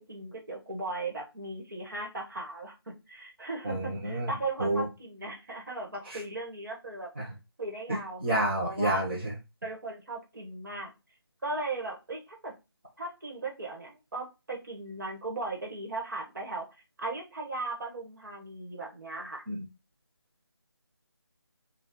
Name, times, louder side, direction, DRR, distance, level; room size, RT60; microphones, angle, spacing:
voice 1, 0.1-2.7 3.1-7.1 7.6-9.1 9.6-10.9 11.4-12.5 13.0-16.6 17.0-19.4, right 2 dB, 50° right, 0 dB, 1.3 m, -37 dB
voice 2, 3.6-4.3 4.6-4.8 6.1-6.2 7.2-7.3 8.2-9.3 19.5-19.7, right 1 dB, 25° right, -6 dB, 0.7 m, -29 dB
4.2 x 2.3 x 3.5 m, 0.26 s
figure-of-eight pair, 170°, 13 cm